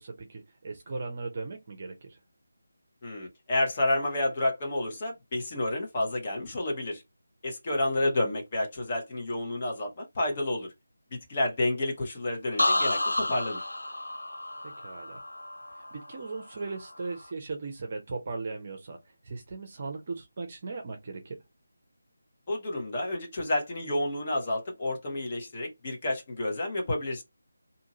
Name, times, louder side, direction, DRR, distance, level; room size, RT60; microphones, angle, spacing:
voice 1, 0.0-2.2 14.6-15.2 15.8-19.0 19.2-21.4, right 3 dB, 40° right, 0.6 m, -38 dB
voice 2, 3.0-7.0 7.4-10.7 11.1-13.6 22.5-27.2, left 1 dB, 35° left, 1.2 m, -30 dB
sound 1, 12.6-16.4 16.8-17.3, left 1 dB, 85° left, 0.4 m, -31 dB
2.7 x 2.5 x 2.8 m
figure-of-eight pair, 160°, 0 cm